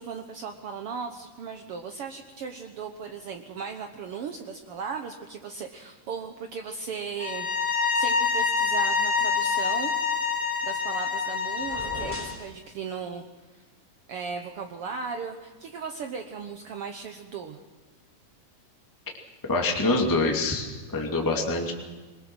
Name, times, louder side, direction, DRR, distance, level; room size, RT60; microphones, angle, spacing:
voice 1, 0.0-9.9 10.2-13.2 13.5-13.6 14.1-17.6, right 5 dB, 75° right, 5 dB, 1.3 m, -37 dB
sound 1, 7.2-12.3, left 5 dB, 45° left, 5.5 m, -26 dB
sound 2, 11.6-12.5, equal, 10° right, 3.4 m, -38 dB
voice 2, 19.5-20.7 20.9-21.7, left 2 dB, 5° left, 0 dB, 1.8 m, -25 dB
22.5 x 20.5 x 6.2 m, 1.3 s
omnidirectional pair, 4.0 m